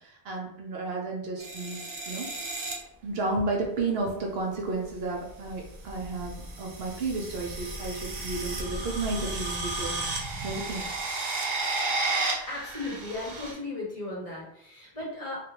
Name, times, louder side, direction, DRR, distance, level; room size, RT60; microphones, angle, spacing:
voice 1, 0.2-1.8 2.1-2.3 3.0-6.3 6.6-10.0 10.4-10.8, right 3 dB, 70° right, 0 dB, 0.8 m, -32 dB
sound 1, 1.4-2.7 4.0-4.3 5.3-13.5, right 2 dB, 45° right, 0.4 m, -33 dB
voice 2, 12.5-15.4, left 2 dB, 35° left, -5 dB, 0.8 m, -36 dB
2.4 x 2.2 x 2.9 m, 0.76 s
omnidirectional pair, 1.1 m